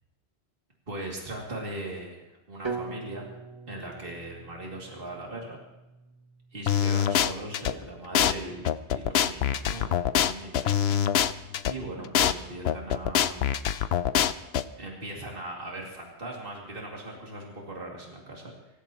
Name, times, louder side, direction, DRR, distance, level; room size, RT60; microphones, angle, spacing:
voice 1, 0.9-3.2 3.7-5.6 6.5-11.0 11.7-13.5 14.6-18.5, right 1 dB, 55° right, -2 dB, 2.8 m, -39 dB
sound 1, 2.6-6.7, right 4 dB, 25° right, 1.1 m, -41 dB
sound 2, 6.7-7.7 8.2-8.3 8.7-11.7 12.2-12.3 12.7-14.6, left 9 dB, 70° left, 0.9 m, -24 dB
24.5 x 15.0 x 3.0 m, 1.0 s
omnidirectional pair, 1.2 m